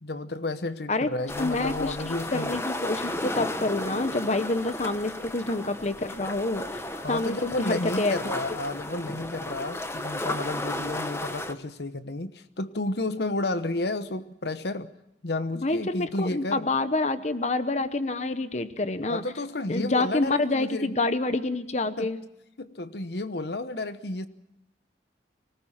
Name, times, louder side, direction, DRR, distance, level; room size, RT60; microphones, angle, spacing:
voice 1, 0.0-2.6 6.9-14.9 15.2-16.7 19.1-20.9 22.0-22.1 22.6-24.3, left 2 dB, 65° left, 1.0 m, -32 dB
sound 1, 1.3-11.5, left 1 dB, 15° left, 1.1 m, -34 dB
voice 2, 1.4-6.8 7.1-8.2 15.6-19.2 19.7-22.2, left 2 dB, 40° left, 1.0 m, -27 dB
24.5 x 19.0 x 7.4 m
head